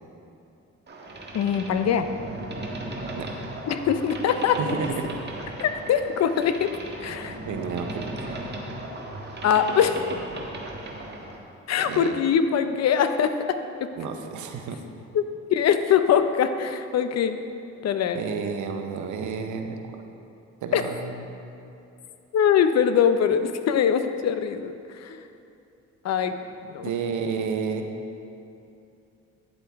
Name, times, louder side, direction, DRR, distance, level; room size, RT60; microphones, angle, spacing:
Boat Water vehicle, 0.9-11.4, right 1 dB, 35° right, 1.4 m, -36 dB
voice 1, 1.3-2.1 3.7-4.8 5.6-6.7 7.0-7.4 9.4-10.0 11.7-13.9 15.1-15.2 15.5-17.4 17.8-18.2 20.7-20.8 22.3-24.7 25.0-25.2 26.0-26.3 26.7-26.9, left 8 dB, 60° left, 9 dB, 0.6 m, -22 dB
voice 2, 4.6-5.1 7.5-8.5 11.8-12.2 14.0-14.8 18.1-19.8 20.6-21.3 26.8-27.8, right 6 dB, 75° right, 5 dB, 0.9 m, -31 dB
9.8 x 7.9 x 3.5 m, 2.7 s
cardioid pair, 90°, 30 cm